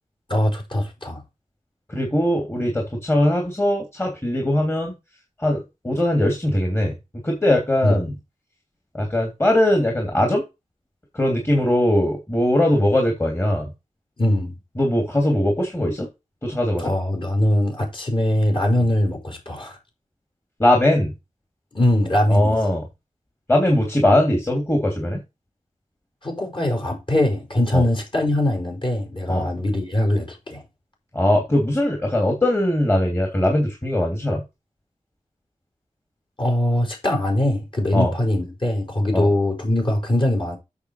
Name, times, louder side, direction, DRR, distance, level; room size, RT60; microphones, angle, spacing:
voice 1, 0.3-1.2 7.8-8.0 14.2-14.5 16.8-19.8 21.7-22.8 26.2-30.6 36.4-40.6, left 1 dB, 40° left, 5.2 m, -22 dB
voice 2, 1.9-4.9 5.4-6.9 7.2-8.1 8.9-10.4 11.1-13.7 14.8-16.1 16.4-16.9 20.6-21.1 22.3-22.8 23.5-25.2 27.7-27.8 29.3-29.5 31.1-34.4 37.9-38.1 39.1-39.3, left 1 dB, 20° left, 2.9 m, -20 dB
8.4 x 7.0 x 4.7 m
wide cardioid pair, 115°, 13 cm